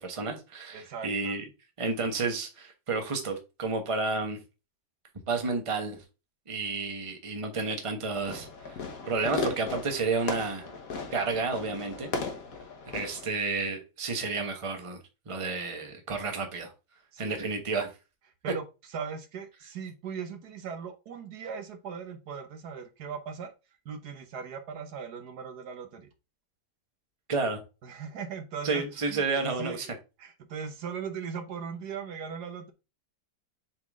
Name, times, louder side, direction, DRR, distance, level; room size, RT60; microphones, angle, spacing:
voice 1, 0.0-1.4 1.8-4.4 5.3-6.0 6.5-8.8 9.1-10.7 11.1-12.1 12.9-15.0 15.3-16.7 17.2-17.9 27.3-27.6 28.6-29.9, right 4 dB, 20° right, 4 dB, 1.1 m, -31 dB
voice 2, 0.7-1.4 8.3-8.5 17.1-17.4 18.4-23.5 23.8-26.1 27.8-32.7, right 6 dB, 70° right, 7 dB, 1.4 m, -39 dB
Fireworks, 8.1-13.3, left 4 dB, 55° left, 1.6 m, -36 dB
7.3 x 3.8 x 3.6 m, 0.29 s
omnidirectional pair, 1.9 m